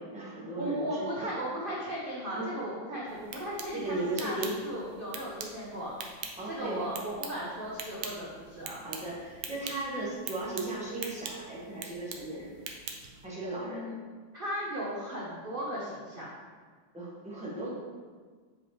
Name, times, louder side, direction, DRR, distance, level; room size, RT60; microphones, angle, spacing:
voice 1, 0.0-1.3 2.3-2.5 3.7-4.5 6.4-6.9 8.8-12.6 13.2-13.9 16.9-17.7, right 2 dB, 5° right, -6 dB, 1.1 m, -36 dB
voice 2, 0.6-5.9 6.5-8.8 13.6-14.0 14.3-16.3, right 1 dB, 45° right, -5 dB, 0.7 m, -36 dB
sound 1, 3.1-13.3, right 6 dB, 65° right, 1.0 m, -44 dB
7.4 x 4.7 x 3.2 m, 1.5 s
omnidirectional pair, 2.1 m